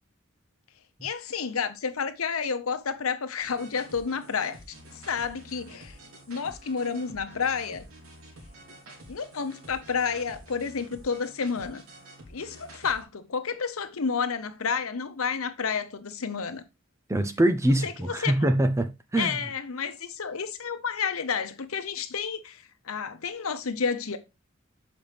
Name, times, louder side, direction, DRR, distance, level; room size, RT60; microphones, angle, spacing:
voice 1, 1.0-4.6 5.1-6.0 6.3-7.9 9.1-11.8 12.3-16.6 17.8-17.9 18.2-18.3 19.2-24.2, left 6 dB, 85° left, 0.9 m, -30 dB
sound 1, 3.4-13.0, right 1 dB, 70° right, 2.8 m, -49 dB
voice 2, 17.1-19.4, right 1 dB, 15° right, 0.5 m, -24 dB
7.3 x 5.2 x 3.4 m
head